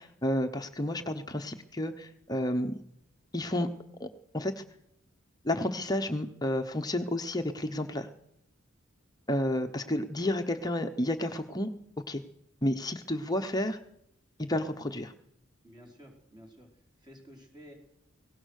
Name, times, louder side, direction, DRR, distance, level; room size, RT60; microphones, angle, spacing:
voice 1, 0.0-2.8 3.3-3.7 4.0-4.1 4.3-4.6 5.4-8.1 9.3-11.7 12.1-12.2 12.6-13.8 14.4-15.1, left 1 dB, 20° left, 5 dB, 0.9 m, -31 dB
voice 2, 15.6-17.7, equal, 20° right, 0 dB, 4.7 m, -53 dB
22.5 x 18.0 x 6.5 m, 0.76 s
head